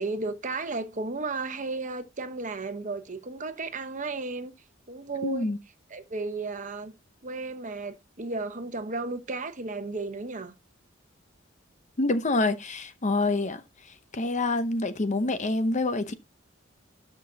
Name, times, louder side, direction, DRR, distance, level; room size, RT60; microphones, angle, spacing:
voice 1, 0.0-4.5 4.9-5.4 5.9-7.0 7.2-10.5, right 3 dB, 40° right, 1.0 m, -34 dB
voice 2, 5.2-5.6 12.0-13.6 14.1-16.1, left 2 dB, 35° left, 0.7 m, -26 dB
12.5 x 5.9 x 2.8 m
head